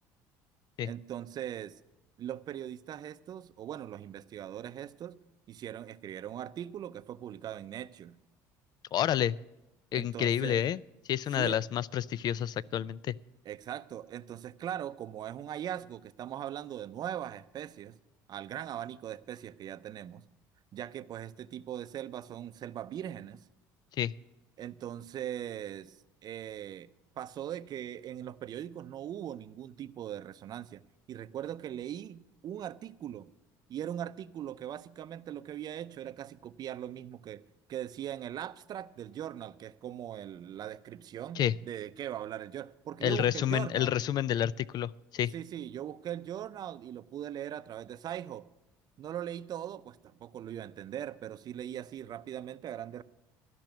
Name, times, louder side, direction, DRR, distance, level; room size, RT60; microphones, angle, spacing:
voice 1, 0.8-1.8 2.2-5.2 5.5-8.1 9.9-10.7 11.4-11.6 13.5-18.0 18.3-20.2 20.7-23.4 24.6-26.9 27.2-30.8 31.1-33.3 33.7-37.4 37.7-43.9 45.3-48.4 49.0-53.0, right 10 dB, 50° right, 14 dB, 0.6 m, -40 dB
voice 2, 8.9-9.4 9.9-10.8 11.1-13.2 24.0-24.1 41.4-41.5 43.0-45.3, left 10 dB, 50° left, 22 dB, 0.4 m, -29 dB
12.0 x 6.0 x 9.2 m, 0.98 s
supercardioid pair, 85°, 9 cm